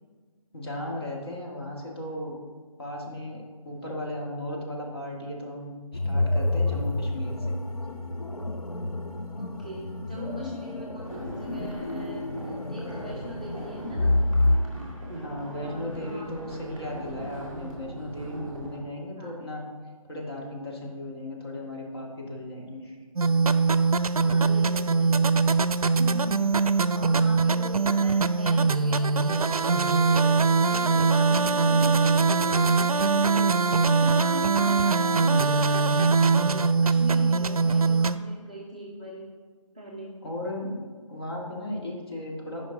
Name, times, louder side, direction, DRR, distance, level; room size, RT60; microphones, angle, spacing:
voice 1, 0.5-2.3 2.8-5.7 6.0-7.5 15.1-19.6 20.1-23.0 40.2-42.7, left 1 dB, 45° left, -2 dB, 1.7 m, -36 dB
sound 1, 5.9-14.6, left 2 dB, 90° left, 0.8 m, -28 dB
voice 2, 9.3-14.1 15.5-16.6 19.2-19.4 24.2-25.2 26.0-26.5 26.9-33.6 34.0-39.3 39.7-40.2, equal, 15° right, -6 dB, 0.5 m, -40 dB
sound 2, 11.0-18.8, right 1 dB, 5° left, 0.9 m, -40 dB
sound 3, 23.2-38.2, right 4 dB, 85° right, 0.4 m, -22 dB
9.8 x 5.2 x 3.8 m, 1.5 s
figure-of-eight pair, 160°, 18 cm